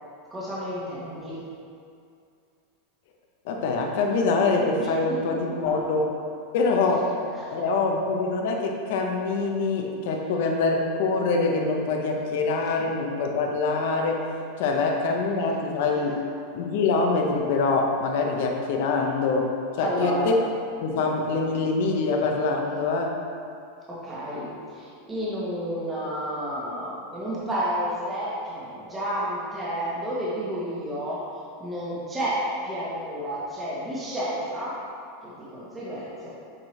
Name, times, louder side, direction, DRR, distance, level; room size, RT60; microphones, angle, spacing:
voice 1, 0.3-1.4 4.8-5.2 5.6-5.7 7.3-7.6 15.9-16.0 19.8-20.3 23.9-31.2 31.6-34.8 35.2-36.3, equal, 10° right, -8 dB, 1.2 m, -31 dB
voice 2, 3.4-6.0 6.5-7.1 7.5-16.2 16.5-20.4 20.8-23.2, left 3 dB, 55° left, 1 dB, 0.7 m, -24 dB
7.4 x 4.4 x 3.2 m, 2.4 s
supercardioid pair, 165°, 0 cm